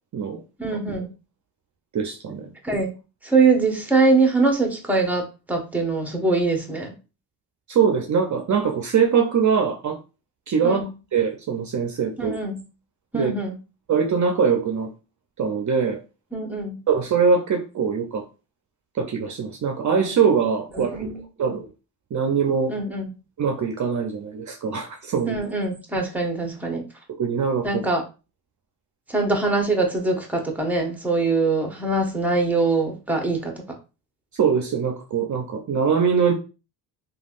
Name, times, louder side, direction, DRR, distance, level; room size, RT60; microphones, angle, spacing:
voice 1, 0.6-1.1 2.6-2.9 3.2-6.9 10.6-10.9 12.2-12.6 13.1-13.6 16.3-16.8 20.7-21.2 21.4-21.6 22.7-23.1 25.3-26.9 27.6-28.0 29.1-33.5, right 3 dB, 5° right, 2 dB, 1.0 m, -23 dB
voice 2, 1.9-2.5 7.7-10.0 10.5-10.9 11.1-12.4 13.1-13.3 13.9-14.9 15.4-16.0 16.9-18.2 18.9-21.1 21.4-21.7 22.1-22.7 23.4-25.4 27.1-27.8 34.4-36.3, right 6 dB, 45° right, 3 dB, 0.6 m, -22 dB
3.3 x 2.5 x 2.5 m, 0.30 s
supercardioid pair, 65°, 42 cm